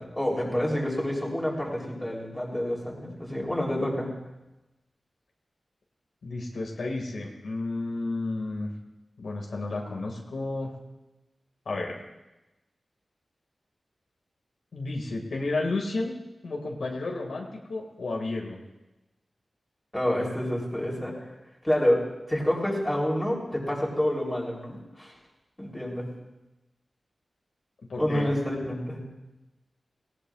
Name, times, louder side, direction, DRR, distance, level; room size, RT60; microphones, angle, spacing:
voice 1, 0.0-4.1 19.9-21.3 21.6-22.0 22.3-25.1 25.6-26.1 28.0-29.0, left 1 dB, 10° left, -2 dB, 3.5 m, -28 dB
voice 2, 6.2-8.7 9.2-10.8 11.7-11.9 14.7-16.2 16.4-18.6 27.9-28.3, left 2 dB, 80° left, -1 dB, 2.1 m, -32 dB
18.5 x 18.5 x 2.5 m, 1.0 s
wide cardioid pair, 120°, 0 cm